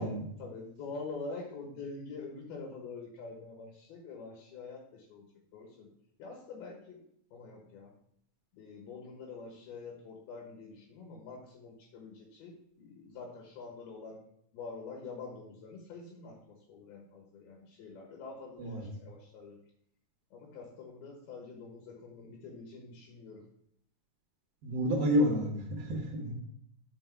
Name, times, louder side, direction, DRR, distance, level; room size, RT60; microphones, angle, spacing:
voice 1, 0.0-5.3 5.5-5.9 6.2-7.0 7.3-7.9 8.5-14.2 14.5-19.6 20.3-23.5 24.9-25.1, left 4 dB, 75° left, -1 dB, 3.1 m, -46 dB
voice 2, 24.6-26.3, equal, 70° right, 1 dB, 2.8 m, -30 dB
6.1 x 6.0 x 4.5 m, 0.68 s
omnidirectional pair, 4.6 m